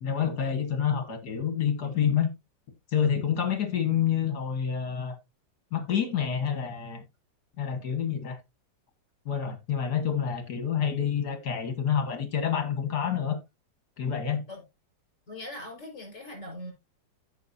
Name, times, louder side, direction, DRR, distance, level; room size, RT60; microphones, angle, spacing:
voice 1, 0.0-2.3 2.9-5.2 5.7-7.0 7.6-8.4 9.3-13.4 14.0-14.4, left 8 dB, 60° left, 1.9 m, -28 dB
voice 2, 15.3-16.7, left 1 dB, 40° left, 5.2 m, -40 dB
15.0 x 5.6 x 2.6 m
omnidirectional pair, 2.0 m